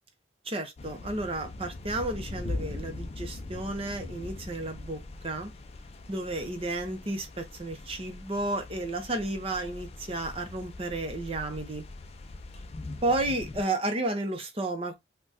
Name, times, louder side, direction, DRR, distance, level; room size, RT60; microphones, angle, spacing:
voice 1, 0.4-5.5 6.1-11.8 13.0-14.9, right 2 dB, 30° right, 0.7 m, -32 dB
sound 1, 0.8-13.6, left 2 dB, 35° left, 0.4 m, -41 dB
3.8 x 2.2 x 2.6 m
head